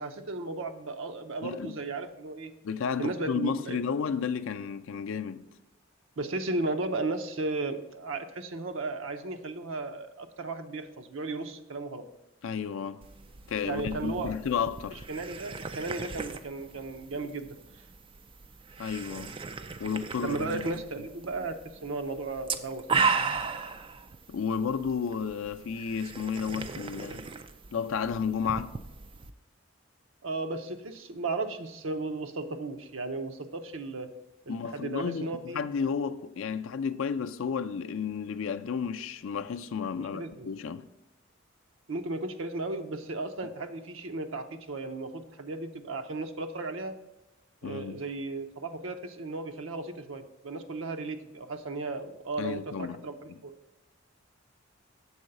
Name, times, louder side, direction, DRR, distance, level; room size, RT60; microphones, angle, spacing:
voice 1, 0.0-2.5 3.0-3.8 6.2-12.1 13.6-14.3 14.9-17.6 20.2-23.0 30.2-34.1 34.5-35.6 40.0-40.5 41.9-47.0 47.6-53.5, right 3 dB, 75° right, 0.7 m, -35 dB
voice 2, 1.4-1.7 2.6-5.4 12.4-13.0 13.5-15.0 18.8-19.3 19.8-20.7 24.3-27.3 27.7-28.7 34.5-35.3 35.5-40.9 47.6-48.0 52.4-53.0 53.3-53.4, left 6 dB, 80° left, 0.4 m, -32 dB
sound 1, 13.0-29.3, right 5 dB, 25° right, 0.3 m, -36 dB
7.1 x 3.9 x 6.6 m
head